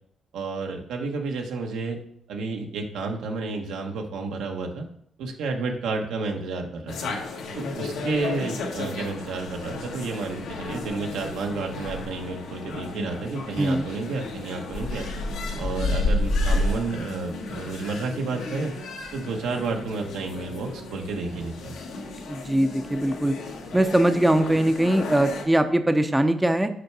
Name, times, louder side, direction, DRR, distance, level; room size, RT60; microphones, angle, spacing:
voice 1, 0.3-2.0 2.3-4.9 5.2-7.1 7.6-15.1 15.6-18.7 19.1-21.8, right 3 dB, 85° right, 2 dB, 1.2 m, -31 dB
sound 1, 6.9-25.4, left 2 dB, 85° left, 1.4 m, -32 dB
voice 2, 13.6-13.9 22.3-23.4 23.7-26.7, right 1 dB, 10° right, 8 dB, 0.6 m, -21 dB
6.5 x 4.5 x 6.0 m, 0.69 s
cardioid pair, 90°, 0 cm